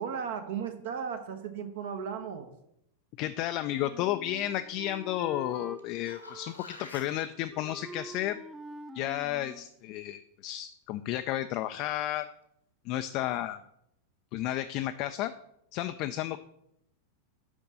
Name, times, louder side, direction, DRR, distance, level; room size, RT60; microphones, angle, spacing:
voice 1, 0.0-2.5, right 7 dB, 55° right, 7 dB, 0.8 m, -35 dB
voice 2, 3.2-8.4 8.9-12.3 12.9-13.6 14.3-15.3 15.7-16.4, left 13 dB, 40° left, 9 dB, 0.3 m, -32 dB
Wind instrument woodwind instrument, 3.7-5.8 6.2-7.2 7.5-9.7, right 1 dB, 10° right, 0.7 m, -46 dB
sound 1, 5.8-7.2 12.0-12.1, left 3 dB, 80° left, 1.2 m, -47 dB
6.2 x 5.3 x 6.5 m, 0.77 s
figure-of-eight pair, 90°, 0 cm